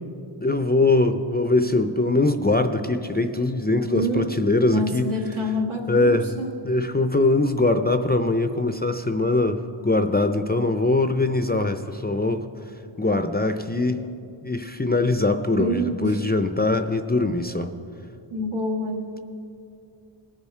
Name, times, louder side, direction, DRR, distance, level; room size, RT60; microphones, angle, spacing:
voice 1, 0.4-5.1 5.9-6.4 6.6-12.5 13.0-14.0 14.4-17.7, left 2 dB, 20° left, 7 dB, 0.5 m, -22 dB
voice 2, 3.9-4.3 4.7-6.5 15.5-16.1 18.3-19.1, equal, 70° right, 0 dB, 1.8 m, -27 dB
20.5 x 7.2 x 4.4 m, 2.5 s
wide cardioid pair, 85°, 49 cm